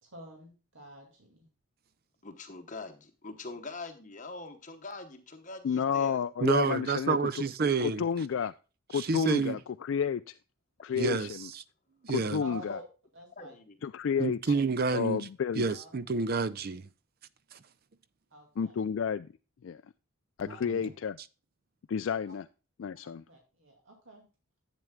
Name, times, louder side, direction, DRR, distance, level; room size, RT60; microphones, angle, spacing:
voice 1, 0.0-1.5 12.4-12.8 13.1-13.5 15.7-15.9 18.3-18.8 20.5-20.9 23.3-24.3, right 1 dB, 60° right, 2.3 m, -48 dB
voice 2, 2.2-6.2 12.7-12.8 13.4-13.8, left 3 dB, 35° left, 0.9 m, -43 dB
voice 3, 5.6-7.4 7.8-8.5 8.9-10.4 10.8-11.5 12.1-12.8 13.8-14.5 14.9-15.6 18.6-19.3 19.6-19.8 20.4-21.2 21.9-22.5 22.8-23.2, left 7 dB, 60° left, 0.3 m, -31 dB
voice 4, 6.4-8.0 8.9-9.6 11.0-11.6 12.0-12.4 14.2-15.3 15.6-16.9 17.5-17.6 20.5-20.8, right 4 dB, 45° right, 0.5 m, -29 dB
11.0 x 8.3 x 2.2 m
head